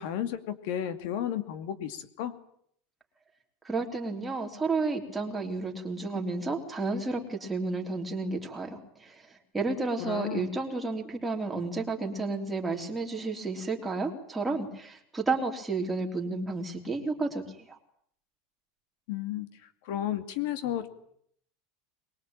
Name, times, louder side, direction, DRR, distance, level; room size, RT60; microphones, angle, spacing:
voice 1, 0.0-2.3 10.0-10.5 19.1-19.5 19.8-20.9, left 11 dB, 65° left, 10 dB, 2.5 m, -33 dB
voice 2, 3.6-17.8, right 3 dB, 10° right, 1 dB, 3.9 m, -32 dB
23.0 x 22.5 x 9.0 m, 0.67 s
supercardioid pair, 150°, 0 cm